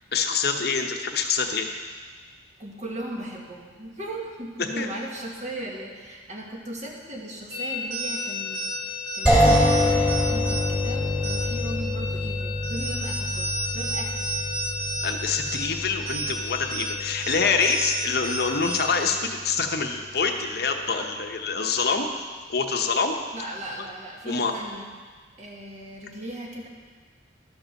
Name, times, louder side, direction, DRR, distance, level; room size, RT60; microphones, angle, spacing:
voice 1, 0.1-1.7 4.8-4.9 15.0-22.1 22.5-23.2 24.3-24.5, left 5 dB, 55° left, 4 dB, 0.9 m, -25 dB
voice 2, 2.6-14.3 23.3-24.9 25.4-26.7, right 1 dB, 40° right, -1 dB, 1.5 m, -37 dB
sound 1, 7.5-19.1, left 1 dB, 80° right, 3.7 m, -32 dB
sound 2, 9.3-19.0, left 1 dB, 5° right, 2.7 m, -26 dB
12.5 x 5.2 x 6.4 m, 1.5 s
head